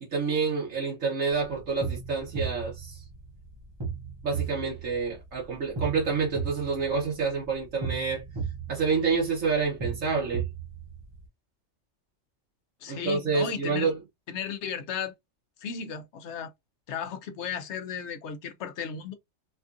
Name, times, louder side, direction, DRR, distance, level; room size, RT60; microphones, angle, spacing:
voice 1, 0.0-3.0 4.2-8.2 8.7-10.5 12.9-13.9, right 4 dB, 80° right, 1.7 m, -28 dB
sound 1, 1.5-11.2, right 5 dB, 25° right, 0.7 m, -36 dB
voice 2, 12.8-13.9 14.3-15.1 15.6-16.5 16.9-19.1, left 7 dB, 65° left, 0.9 m, -35 dB
4.2 x 2.4 x 2.5 m
omnidirectional pair, 1.3 m